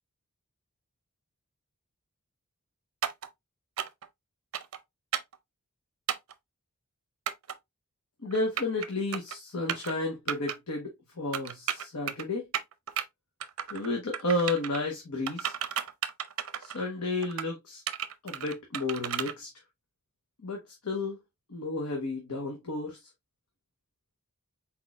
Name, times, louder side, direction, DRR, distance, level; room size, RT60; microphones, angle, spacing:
sound 1, 3.0-3.3 3.8-4.1 4.5-4.8 5.1-5.4 6.1-6.3 7.3-7.5 8.3-8.9 9.1-9.4 9.7-9.9 10.3-10.6 11.3-12.2 12.5-13.0 13.4-13.9 14.1-14.8 15.3-16.8 17.2-17.5 17.9-19.3, right 9 dB, 65° right, 0.5 m, -33 dB
voice 1, 8.2-12.5 13.7-15.6 16.6-17.8 18.2-19.5 20.4-21.2 21.5-23.0, left 2 dB, 80° left, 1.0 m, -32 dB
4.4 x 4.1 x 2.4 m
head